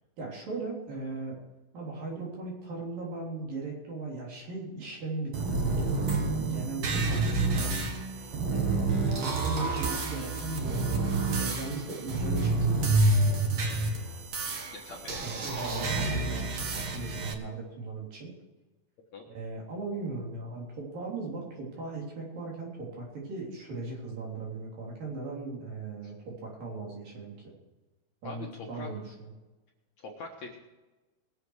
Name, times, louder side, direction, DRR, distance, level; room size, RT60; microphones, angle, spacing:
voice 1, 0.2-1.4 1.7-7.8 8.5-10.8 11.4-13.5 15.2-18.3 19.3-27.5 28.2-29.3, right 3 dB, 55° right, -3 dB, 5.0 m, -38 dB
sound 1, 5.3-17.3, right 2 dB, 75° right, 1.1 m, -28 dB
voice 2, 14.7-15.2 19.1-19.3 28.2-28.9 30.0-30.6, left 3 dB, 60° left, -1 dB, 2.1 m, -42 dB
21.5 x 8.0 x 4.8 m, 1.1 s
omnidirectional pair, 4.7 m